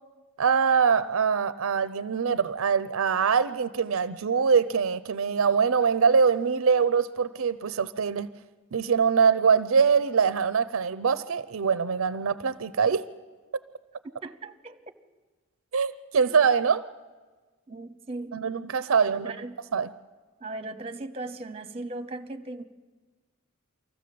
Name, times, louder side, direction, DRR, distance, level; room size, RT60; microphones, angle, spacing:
voice 1, 0.4-8.3 8.7-13.1 15.7-16.8 18.3-19.3 19.7-19.9, right 6 dB, 70° right, 15 dB, 0.5 m, -23 dB
voice 2, 14.2-14.8 16.3-16.4 17.7-18.4 19.1-19.6 20.4-22.6, right 2 dB, 30° right, 11 dB, 0.9 m, -38 dB
24.0 x 15.0 x 7.6 m, 1.4 s
head